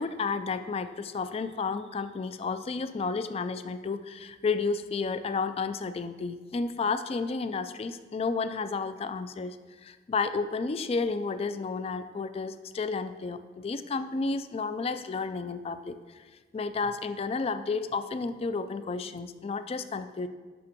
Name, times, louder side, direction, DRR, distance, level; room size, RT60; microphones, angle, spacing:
voice 1, 0.0-9.6 9.8-16.2 16.5-20.3, left 4 dB, 35° left, 12 dB, 0.3 m, -32 dB
6.2 x 5.9 x 5.9 m, 1.4 s
head